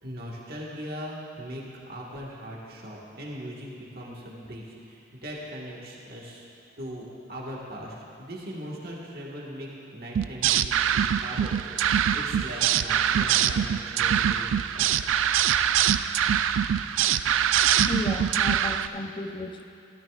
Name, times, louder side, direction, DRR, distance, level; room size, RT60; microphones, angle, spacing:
voice 1, 0.0-6.5 6.8-11.5 11.8-14.4 14.7-15.0, equal, 50° right, -4 dB, 1.6 m, -39 dB
sound 1, 10.1-18.9, right 9 dB, 85° right, 0.3 m, -23 dB
voice 2, 17.9-19.6, left 2 dB, 25° left, 5 dB, 0.6 m, -33 dB
15.5 x 13.0 x 2.4 m, 2.8 s
head